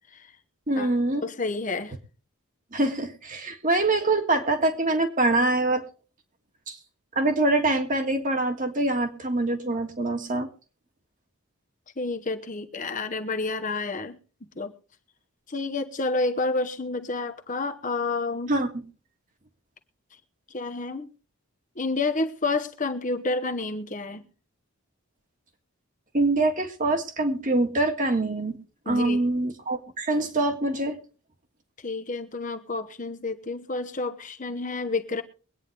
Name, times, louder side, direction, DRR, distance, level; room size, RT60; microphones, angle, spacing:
voice 1, 0.7-1.2 2.7-5.8 6.7-6.8 7.1-10.5 18.5-18.8 26.1-28.6 28.8-31.0, right 2 dB, 35° right, 1.7 m, -24 dB
voice 2, 1.2-1.9 12.0-14.2 14.6-14.7 15.5-18.6 20.5-21.1 21.8-24.2 28.9-29.2 31.8-35.2, left 3 dB, 35° left, 1.0 m, -29 dB
23.0 x 9.3 x 3.3 m
head